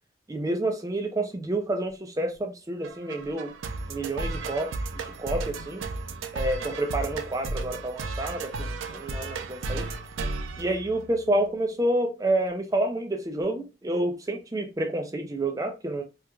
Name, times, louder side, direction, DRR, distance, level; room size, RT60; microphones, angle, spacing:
voice 1, 0.3-3.5 3.9-5.8 6.3-9.9 10.6-16.0, right 1 dB, 15° right, 0.4 m, -29 dB
sound 1, 2.8-11.4, right 3 dB, 90° right, 0.5 m, -34 dB
4.4 x 2.4 x 2.2 m
head